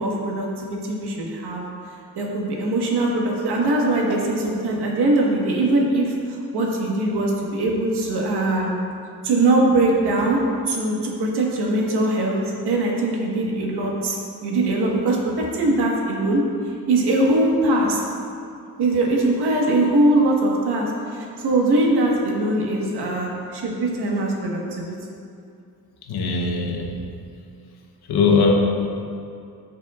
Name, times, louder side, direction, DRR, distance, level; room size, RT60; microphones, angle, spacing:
voice 1, 0.0-1.6 2.1-8.7 9.2-10.4 10.7-12.4 12.6-14.2 14.4-16.4 16.9-18.0 18.8-24.9, right 2 dB, 80° right, -2 dB, 1.5 m, -21 dB
voice 2, 26.1-27.2 28.1-28.5, left 4 dB, 80° left, 1 dB, 1.1 m, -20 dB
14.0 x 5.6 x 2.4 m, 2.5 s
cardioid pair, 130°, 38 cm